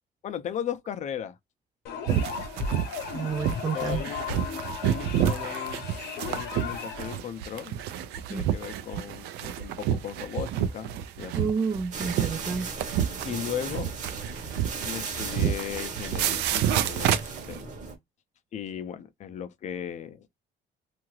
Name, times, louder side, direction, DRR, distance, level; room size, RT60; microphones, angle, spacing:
voice 1, 0.2-1.4 1.9-2.4 3.7-5.9 6.3-7.8 8.2-11.5 13.2-13.9 14.8-17.8 18.5-20.3, left 9 dB, 45° left, 0.5 m, -37 dB
sound 1, 1.8-7.2, left 6 dB, 70° left, 0.8 m, -35 dB
sound 2, 2.1-17.6, right 10 dB, 85° right, 0.4 m, -29 dB
voice 2, 3.1-4.1 8.3-8.4 11.3-12.7, right 5 dB, 20° right, 0.3 m, -30 dB
sound 3, 11.9-17.9, right 4 dB, 45° right, 0.9 m, -36 dB
2.7 x 2.5 x 3.0 m
cardioid pair, 110°, 17 cm